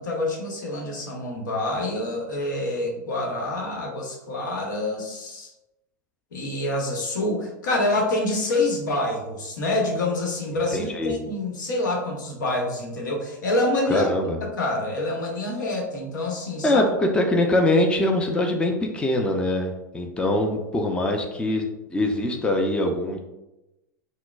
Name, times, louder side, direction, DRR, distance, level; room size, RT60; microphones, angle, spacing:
voice 1, 0.0-5.5 6.3-14.1 14.4-16.8, left 2 dB, 75° left, 0 dB, 0.9 m, -27 dB
voice 2, 10.7-11.2 13.9-14.4 16.6-23.2, left 1 dB, 10° left, 3 dB, 0.4 m, -23 dB
5.7 x 2.0 x 2.3 m, 0.95 s
hypercardioid pair, 95°, 10 cm